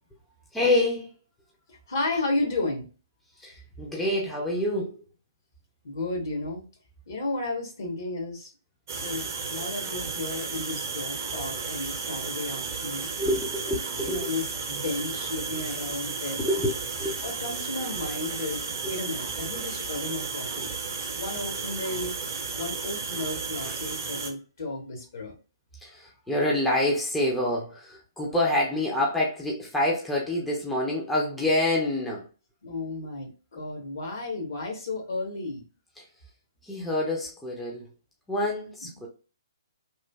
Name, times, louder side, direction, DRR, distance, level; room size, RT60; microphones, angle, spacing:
voice 1, 0.5-1.1 3.4-5.0 13.2-14.3 16.4-17.2 18.8-18.9 23.6-23.7 25.8-32.3 36.0-36.1 36.6-37.9 38.3-39.1, left 1 dB, 5° left, 0.5 m, -27 dB
voice 2, 1.7-2.9 5.8-6.6 7.1-8.5 8.9-13.1 14.0-16.4 17.2-20.7 21.2-22.1 22.6-25.3 32.6-35.6, left 2 dB, 55° left, 1.1 m, -33 dB
sound 1, 8.9-24.3, right 5 dB, 45° right, 0.6 m, -33 dB
3.0 x 2.5 x 2.2 m
figure-of-eight pair, 130°, 2 cm